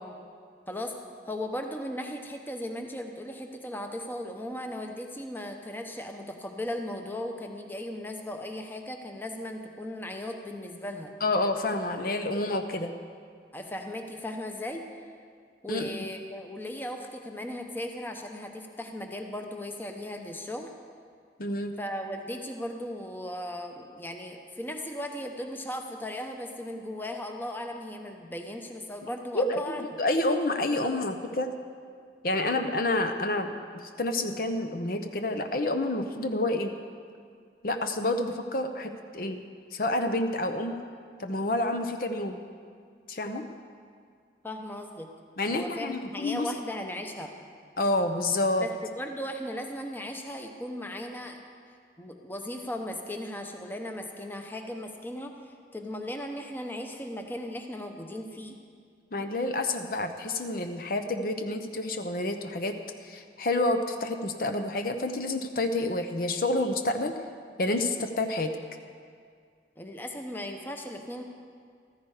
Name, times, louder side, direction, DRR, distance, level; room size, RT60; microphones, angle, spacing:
voice 1, 1.3-11.1 13.5-14.9 15.6-20.7 21.8-29.8 44.4-45.1 45.5-47.3 48.6-51.4 52.0-58.6 69.8-71.2, left 1 dB, 10° left, 4 dB, 0.9 m, -37 dB
voice 2, 11.2-12.9 15.7-16.0 21.4-21.7 29.3-31.5 32.2-36.7 37.6-39.4 39.7-40.8 41.2-42.4 43.1-43.4 45.4-46.5 47.8-48.7 59.1-62.8 63.0-67.2 67.6-68.5, left 2 dB, 55° left, 6 dB, 0.8 m, -29 dB
15.0 x 13.5 x 4.9 m, 2.2 s
head